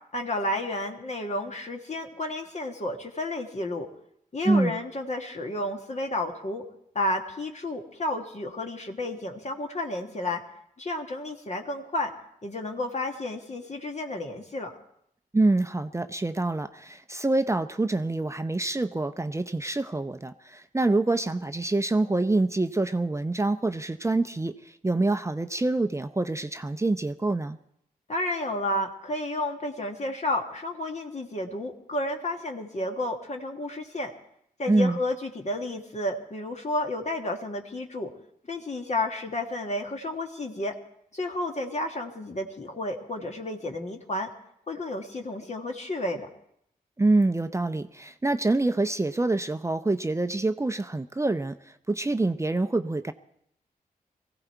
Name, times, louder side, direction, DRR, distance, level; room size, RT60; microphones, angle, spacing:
voice 1, 0.1-3.9 4.3-6.6 7.0-10.4 10.8-12.1 12.4-14.7 28.1-34.1 34.6-38.1 38.5-40.8 41.1-44.3 44.7-46.3, left 1 dB, 45° left, 3 dB, 1.7 m, -31 dB
voice 2, 4.4-4.8 15.3-27.6 34.7-35.0 47.0-53.1, right 2 dB, 20° right, 9 dB, 0.6 m, -26 dB
19.5 x 15.5 x 4.6 m, 0.73 s
cardioid pair, 55°, 16 cm